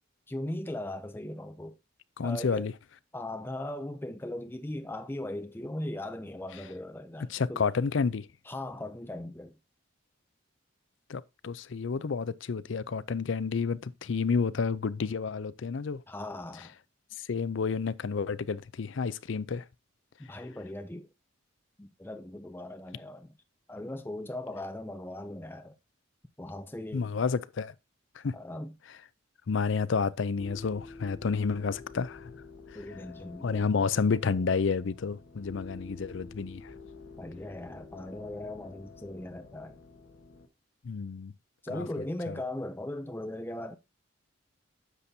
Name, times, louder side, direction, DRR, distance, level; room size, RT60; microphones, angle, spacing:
voice 1, 0.3-1.8 2.2-2.7 3.1-7.6 8.5-9.5 16.1-16.7 20.3-21.1 21.8-23.3 23.7-25.8 26.4-27.1 28.3-28.7 32.7-33.7 37.2-39.8 41.6-43.8, left 1 dB, 10° left, 0.4 m, -38 dB
voice 2, 2.2-2.7 7.3-8.3 11.1-16.0 17.2-19.6 26.9-27.7 28.2-28.3 29.5-32.3 32.7-32.8 33.4-36.7 40.8-41.3 41.7-41.9 42.3-42.4, left 5 dB, 65° left, 0.5 m, -30 dB
sound 1, 30.4-40.5, left 3 dB, 80° left, 1.3 m, -49 dB
10.0 x 7.0 x 2.7 m
head